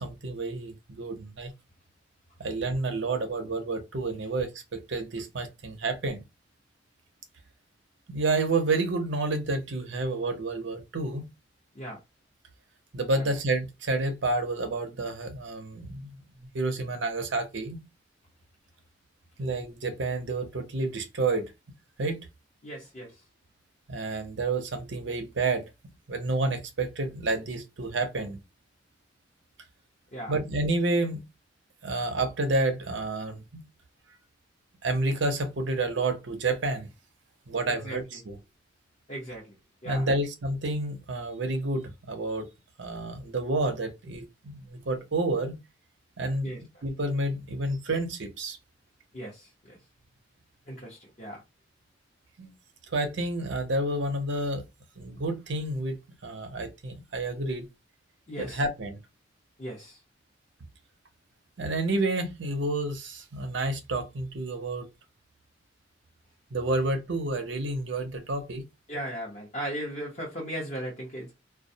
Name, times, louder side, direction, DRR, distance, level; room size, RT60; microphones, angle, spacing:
voice 1, 0.0-1.5 2.4-4.5 4.9-6.2 8.1-11.3 12.9-16.2 16.5-17.8 19.4-21.4 22.0-22.2 23.9-25.7 26.1-28.4 30.3-31.2 31.8-33.6 34.8-36.9 37.5-38.4 39.8-42.5 42.8-45.6 46.2-46.5 46.8-48.6 52.4-52.5 52.9-54.6 55.0-56.0 56.2-57.7 58.4-59.0 61.6-64.9 66.5-68.6, right 2 dB, 70° right, 0.7 m, -29 dB
voice 2, 22.6-23.2 30.1-30.4 37.7-38.2 39.1-39.6 39.8-40.2 46.4-46.6 49.1-49.8 50.7-51.4 58.3-58.6 59.6-60.0 68.9-71.4, right 1 dB, 35° left, 0.8 m, -37 dB
2.3 x 2.1 x 2.6 m
head